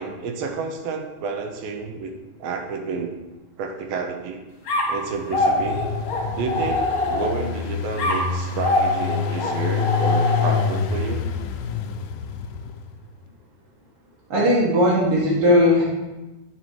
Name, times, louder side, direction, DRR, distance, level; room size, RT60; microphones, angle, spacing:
voice 1, 0.0-2.1 2.4-3.2 3.6-4.4 4.9-5.8 6.4-11.3, right 4 dB, 90° right, 4 dB, 2.5 m, -30 dB
sound 1, 4.7-7.5 8.0-10.8, left 2 dB, 40° left, 1.7 m, -24 dB
Engine, 5.0-13.0, left 6 dB, 90° left, 1.6 m, -27 dB
voice 2, 14.3-15.8, left 1 dB, 55° right, -6 dB, 1.9 m, -17 dB
9.6 x 4.3 x 4.6 m, 1.1 s
omnidirectional pair, 4.0 m